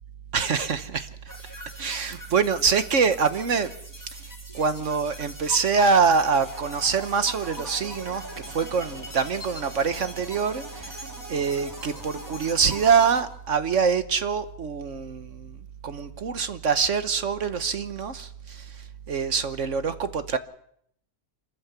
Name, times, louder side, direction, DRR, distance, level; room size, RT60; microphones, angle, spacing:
voice 1, 0.3-1.1 1.8-3.7 4.1-4.2 4.5-15.6 15.8-18.8 19.1-20.4, right 5 dB, 60° right, 1.3 m, -25 dB
sound 1, 1.3-13.2, equal, 10° left, 4.8 m, -41 dB
26.5 x 14.0 x 8.1 m
omnidirectional pair, 1.6 m